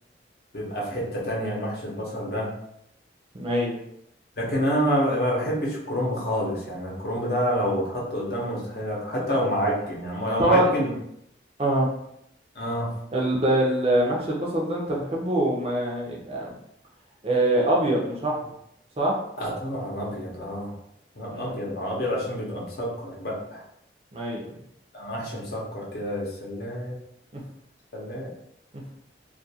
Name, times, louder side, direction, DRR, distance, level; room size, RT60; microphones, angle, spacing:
voice 1, 0.5-2.5 4.4-10.9 12.6-12.9 19.4-20.7 21.2-23.6 24.9-27.0 27.9-28.3, equal, 55° left, -3 dB, 0.7 m, -28 dB
voice 2, 3.3-3.8 10.4-10.7 11.6-11.9 13.1-16.5 17.2-18.5 19.0-19.2 21.3-21.5 24.1-24.5, right 1 dB, 30° right, -2 dB, 0.5 m, -24 dB
2.3 x 2.2 x 2.7 m, 0.75 s
head